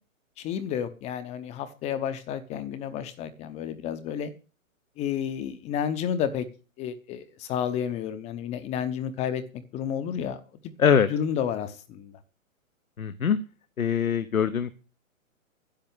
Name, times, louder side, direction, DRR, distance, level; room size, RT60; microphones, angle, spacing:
voice 1, 0.4-4.3 5.0-6.5 6.8-10.4 11.1-12.2, left 8 dB, 15° left, 0.8 m, -31 dB
voice 2, 13.0-13.4 13.8-14.7, left 7 dB, 85° left, 1.2 m, -22 dB
10.5 x 7.6 x 8.9 m
hypercardioid pair, 135°, 41 cm